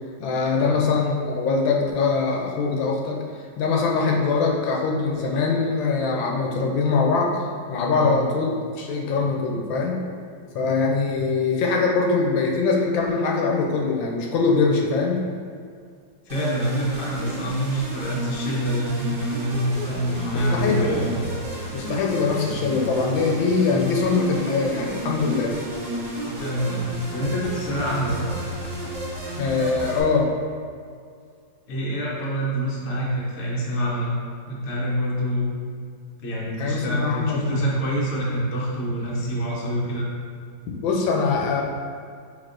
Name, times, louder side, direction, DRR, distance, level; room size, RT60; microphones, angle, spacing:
voice 1, 0.2-3.2 3.6-10.0 10.5-15.2 20.3-21.1 21.7-25.6 29.4-30.3 36.6-37.5 40.8-41.6, left 4 dB, 80° left, -1 dB, 1.3 m, -23 dB
voice 2, 16.3-21.2 26.2-28.3 31.7-34.2 34.5-35.5 36.2-40.1, equal, 50° left, -4 dB, 0.8 m, -26 dB
sound 1, 16.3-30.0, equal, 60° right, 0.4 m, -32 dB
5.3 x 3.4 x 2.5 m, 2.2 s
omnidirectional pair, 2.1 m